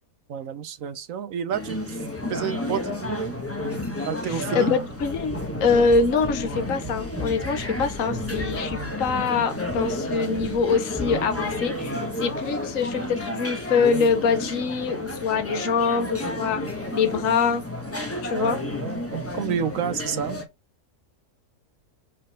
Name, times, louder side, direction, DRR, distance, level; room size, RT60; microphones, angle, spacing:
voice 1, 0.3-1.9 2.3-3.4 4.0-4.7 18.3-20.4, right 8 dB, 65° right, 1.1 m, -30 dB
sound 1, 1.5-20.4, left 1 dB, 10° left, 1.0 m, -31 dB
voice 2, 4.2-16.6 16.9-17.6 18.2-18.6, left 5 dB, 60° left, 1.4 m, -24 dB
sound 2, 4.9-12.1, left 1 dB, 15° right, 0.9 m, -38 dB
5.1 x 4.1 x 5.7 m
omnidirectional pair, 1.6 m